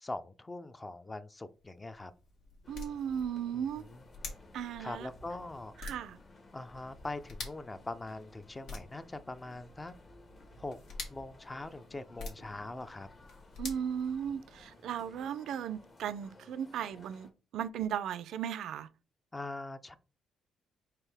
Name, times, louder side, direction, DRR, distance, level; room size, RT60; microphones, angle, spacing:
voice 1, 0.0-2.1 3.5-4.0 4.8-5.7 6.5-9.9 10.6-10.8 11.1-13.1 19.3-20.0, left 2 dB, 20° left, 0.4 m, -42 dB
sound 1, 1.5-14.7, left 3 dB, 80° left, 1.5 m, -49 dB
sound 2, 2.6-17.3, left 2 dB, 40° left, 1.2 m, -58 dB
voice 2, 2.7-3.8 4.5-5.1 5.8-6.2 13.6-18.9, right 8 dB, 75° right, 0.3 m, -36 dB
4.5 x 3.2 x 3.4 m
cardioid pair, 90°, 0 cm